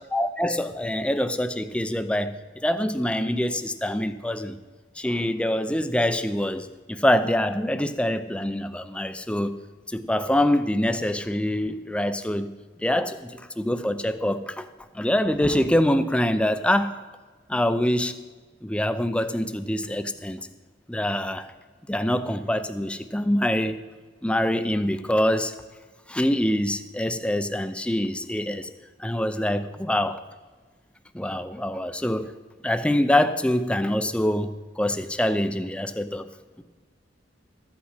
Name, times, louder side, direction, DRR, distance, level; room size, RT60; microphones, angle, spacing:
voice 1, 0.1-2.3 2.6-4.6 5.0-9.6 9.9-12.5 12.8-14.7 14.9-17.0 17.5-18.1 18.6-20.4 20.9-21.5 21.9-23.8 24.2-25.5 26.1-28.7 29.0-30.2 31.1-32.3 32.6-36.3, left 1 dB, 5° left, 10 dB, 0.5 m, -25 dB
14.0 x 8.6 x 5.7 m, 1.3 s
head